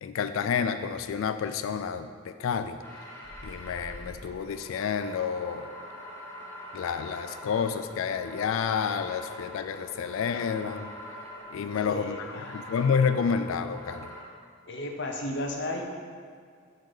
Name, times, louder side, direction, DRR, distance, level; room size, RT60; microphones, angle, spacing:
voice 1, 0.0-2.8 3.4-5.7 6.7-10.9 11.5-14.1, left 6 dB, 85° left, 10 dB, 0.3 m, -29 dB
sound 1, 2.8-14.2, left 1 dB, 10° left, 1.1 m, -44 dB
voice 2, 11.7-12.7 14.7-15.8, left 1 dB, 55° left, 2 dB, 0.8 m, -34 dB
8.0 x 4.1 x 4.9 m, 2.1 s
head